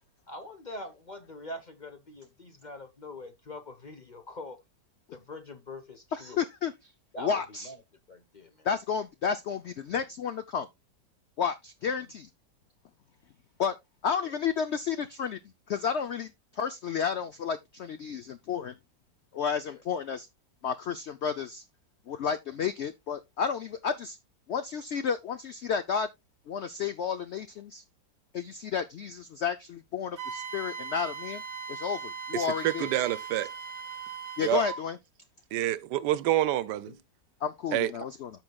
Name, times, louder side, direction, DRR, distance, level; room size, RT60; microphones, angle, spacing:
voice 1, 0.3-4.6 5.1-6.4 7.1-7.8 8.1-8.7 11.8-12.1 19.7-19.8 22.5-22.6 36.9-37.0 38.0-38.1, left 1 dB, 35° left, 0.8 m, -44 dB
voice 2, 6.1-6.7 7.2-7.7 8.6-10.7 11.4-12.3 13.6-13.7 14.0-15.4 15.7-18.7 19.3-20.3 20.6-21.6 22.1-24.2 24.5-26.1 26.5-27.8 28.3-31.4 31.7-32.9 34.4-35.0 37.4-38.3, left 7 dB, 85° left, 0.6 m, -31 dB
Wind instrument woodwind instrument, 30.2-34.8, right 6 dB, 40° right, 1.1 m, -39 dB
voice 3, 32.3-33.5 34.4-34.6 35.5-36.9 37.7-37.9, right 13 dB, 80° right, 1.2 m, -27 dB
13.5 x 5.0 x 2.3 m
omnidirectional pair, 1.9 m